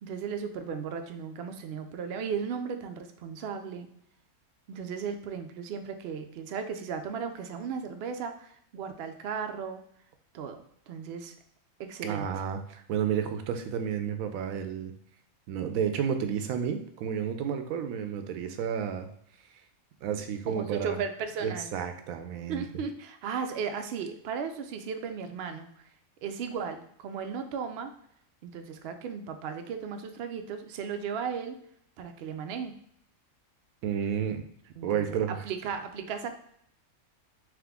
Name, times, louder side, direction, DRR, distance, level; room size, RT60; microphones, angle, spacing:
voice 1, 0.0-3.9 4.7-9.8 10.3-11.3 11.8-12.3 20.5-21.7 22.5-25.7 26.2-27.9 28.4-31.6 32.0-32.7 34.8-35.2 35.4-36.3, right 6 dB, 65° right, 7 dB, 0.6 m, -36 dB
voice 2, 12.0-14.9 15.5-19.1 20.0-21.0 21.4-22.6 33.8-34.4 34.8-35.4, right 8 dB, 85° right, 7 dB, 1.0 m, -31 dB
3.7 x 3.1 x 3.5 m, 0.67 s
omnidirectional pair, 1.4 m